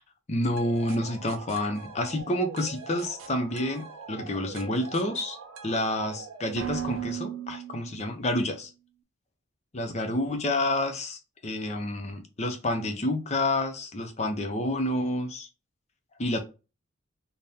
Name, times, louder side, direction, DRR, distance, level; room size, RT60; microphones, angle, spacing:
voice 1, 0.3-5.4 5.6-8.7 9.7-15.5 16.2-16.4, left 1 dB, 30° left, 0.6 m, -29 dB
sound 1, 0.6-8.4, right 7 dB, 75° right, 0.7 m, -39 dB
3.5 x 2.1 x 4.1 m
head